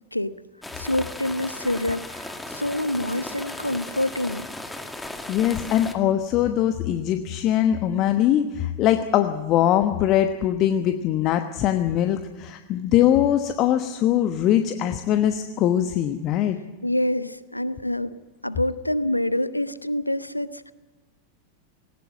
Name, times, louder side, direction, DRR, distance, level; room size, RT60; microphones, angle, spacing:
sound 1, 0.6-5.9, left 1 dB, 5° left, 2.1 m, -36 dB
voice 1, 0.7-4.5 16.8-18.1 18.4-20.7, left 1 dB, 85° left, 15 dB, 0.9 m, -26 dB
voice 2, 5.3-16.6, left 11 dB, 35° left, 8 dB, 1.1 m, -22 dB
19.5 x 19.0 x 7.7 m, 1.2 s
figure-of-eight pair, 90°, 0 cm